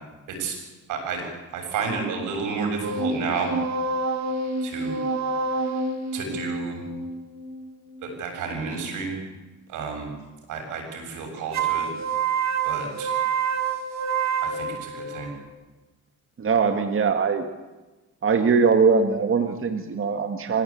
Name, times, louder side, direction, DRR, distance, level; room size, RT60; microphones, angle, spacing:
voice 1, 0.9-1.2 1.5-3.5 4.6-5.0 5.5-5.6 6.1-6.9 8.0-9.2 9.7-10.1 10.5-11.9 12.6-13.1 14.4-15.3, right 5 dB, 90° right, 4 dB, 7.4 m, -31 dB
sound 1, 2.8-8.2 11.5-15.5, right 4 dB, 65° right, 3.1 m, -28 dB
voice 2, 16.4-17.5 18.2-20.6, right 5 dB, 45° right, 6 dB, 2.1 m, -21 dB
27.5 x 16.0 x 8.7 m, 1.2 s
cardioid pair, 90°, 30 cm